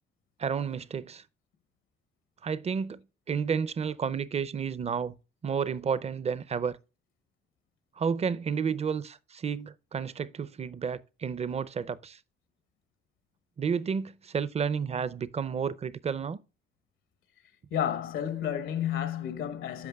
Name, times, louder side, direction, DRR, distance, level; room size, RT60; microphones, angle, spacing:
voice 1, 0.4-1.2 2.4-3.0 3.3-5.1 5.4-6.8 8.0-12.2 13.6-16.4, right 6 dB, 30° right, 0.5 m, -31 dB
voice 2, 17.7-19.9, left 10 dB, 80° left, 1.1 m, -31 dB
13.0 x 5.1 x 2.2 m
cardioid pair, 90°, 20 cm